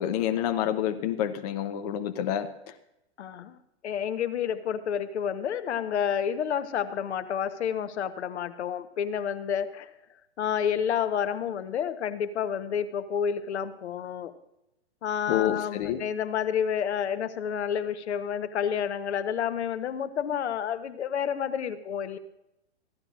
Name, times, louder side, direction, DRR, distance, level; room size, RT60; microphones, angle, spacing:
voice 1, 0.0-2.5 15.3-16.0, left 11 dB, 35° left, 8 dB, 0.7 m, -28 dB
voice 2, 3.2-3.6 3.8-9.9 10.4-14.3 15.0-22.2, left 8 dB, 70° left, 11 dB, 1.0 m, -29 dB
15.5 x 11.5 x 2.5 m, 0.85 s
hypercardioid pair, 145°, 35 cm